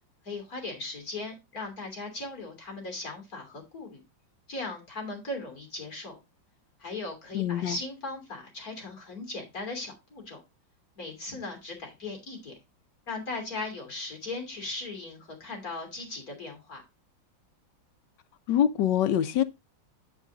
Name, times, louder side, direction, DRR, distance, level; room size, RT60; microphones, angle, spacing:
voice 1, 0.2-4.0 4.5-6.2 6.8-10.4 11.0-12.6 13.1-16.8, left 2 dB, 45° left, 3.4 m, -38 dB
voice 2, 7.3-7.8 18.5-19.4, left 10 dB, 70° left, 1.2 m, -24 dB
7.9 x 7.3 x 3.8 m
omnidirectional pair, 2.1 m